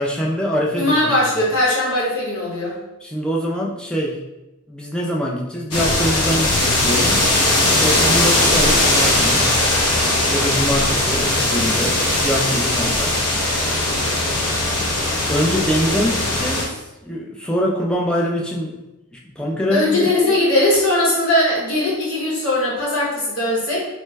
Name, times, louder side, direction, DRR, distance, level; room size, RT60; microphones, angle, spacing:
voice 1, 0.0-1.1 3.0-4.2 4.7-7.3 7.8-9.5 10.3-13.2 15.3-18.8 19.1-20.4, equal, 5° left, -3 dB, 0.3 m, -24 dB
voice 2, 0.8-2.7 19.7-23.9, left 1 dB, 65° left, -6 dB, 1.1 m, -19 dB
sound 1, 5.7-16.6, left 1 dB, 85° left, 0.8 m, -19 dB
3.1 x 2.2 x 3.3 m, 0.99 s
head